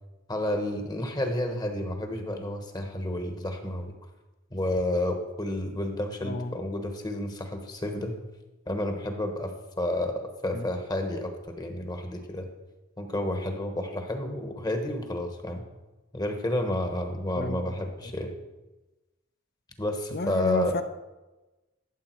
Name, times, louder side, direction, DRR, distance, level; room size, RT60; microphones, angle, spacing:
voice 1, 0.3-3.9 4.5-8.1 8.7-11.3 11.6-12.5 13.0-15.6 16.1-18.3 19.8-20.7, left 1 dB, 20° left, 5 dB, 1.1 m, -30 dB
voice 2, 6.2-6.5 10.5-10.7 17.4-17.6 20.1-20.8, left 2 dB, 50° left, 9 dB, 0.8 m, -31 dB
13.5 x 7.5 x 4.5 m, 1.1 s
head